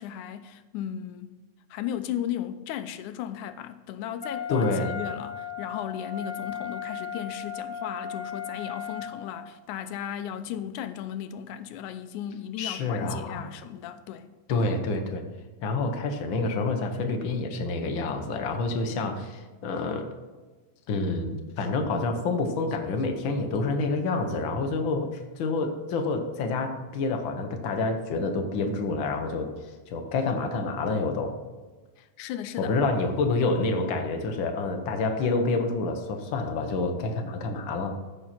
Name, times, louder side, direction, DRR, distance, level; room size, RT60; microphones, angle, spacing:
voice 1, 0.0-1.4 1.7-14.3 32.0-32.8, left 10 dB, 90° left, 2.1 m, -35 dB
Wind instrument woodwind instrument, 4.2-9.5, left 7 dB, 5° right, 1.8 m, -36 dB
voice 2, 4.5-4.9 12.6-13.5 14.5-15.2 15.6-20.1 20.9-29.5 29.9-31.3 32.6-38.0, left 3 dB, 65° left, 1.3 m, -28 dB
14.0 x 6.0 x 4.3 m
omnidirectional pair, 3.5 m